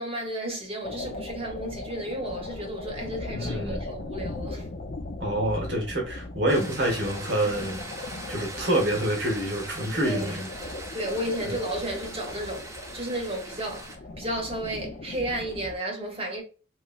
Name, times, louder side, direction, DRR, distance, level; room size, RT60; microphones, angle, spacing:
voice 1, 0.0-4.7 10.0-10.4 10.9-16.4, right 1 dB, 35° right, 1.0 m, -33 dB
sound 1, 0.8-15.7, left 2 dB, 55° left, 0.5 m, -39 dB
voice 2, 3.3-3.8 5.2-7.8 8.3-10.5 11.4-11.5, right 1 dB, 75° right, 1.4 m, -27 dB
sound 2, 6.5-14.0, right 2 dB, 15° right, 0.6 m, -41 dB
3.2 x 3.1 x 2.4 m
head